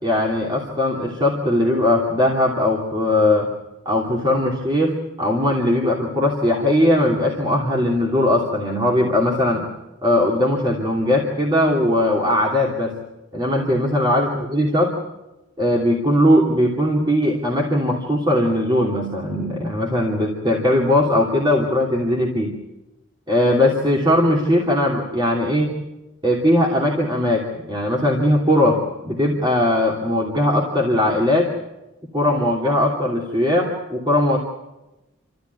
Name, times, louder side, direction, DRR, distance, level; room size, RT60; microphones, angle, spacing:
voice 1, 0.0-3.5 3.8-9.7 10.0-13.0 13.3-14.9 15.6-22.5 23.3-25.8 26.2-31.5 32.1-34.4, left 1 dB, 25° right, -2 dB, 2.8 m, -19 dB
28.5 x 14.0 x 9.4 m, 1.0 s
head